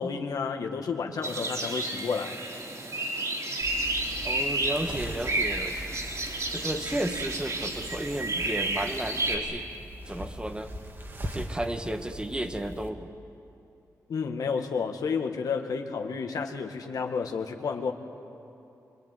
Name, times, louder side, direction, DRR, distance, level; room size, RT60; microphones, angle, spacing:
voice 1, 0.0-2.4 14.1-17.9, left 5 dB, 80° left, 4 dB, 1.9 m, -31 dB
sound 1, 1.2-9.4, right 2 dB, 60° right, 4.3 m, -31 dB
sound 2, 3.6-12.9, equal, 35° right, 2.3 m, -41 dB
voice 2, 4.2-5.9 6.5-9.7 10.1-10.7 11.3-13.1, right 1 dB, 15° right, 7 dB, 1.5 m, -33 dB
24.5 x 22.5 x 9.3 m, 2.7 s
cardioid pair, 80°, 6 cm